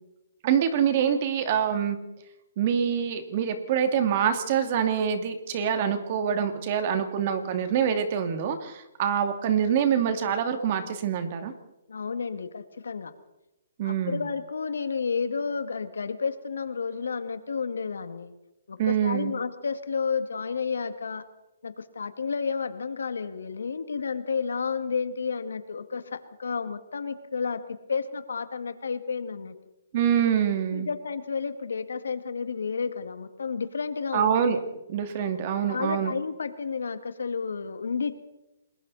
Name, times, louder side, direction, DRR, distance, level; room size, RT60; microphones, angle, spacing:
voice 1, 0.4-2.0 2.6-11.5 13.8-14.2 18.8-19.3 29.9-30.9 34.1-34.6 34.9-36.1, right 8 dB, 40° right, 8 dB, 2.5 m, -25 dB
voice 2, 11.9-13.1 13.8-18.3 18.7-21.2 21.6-29.5 30.7-34.4 35.7-38.1, left 5 dB, 90° left, 9 dB, 2.1 m, -31 dB
28.5 x 21.5 x 4.2 m, 0.96 s
hypercardioid pair, 155°, 0 cm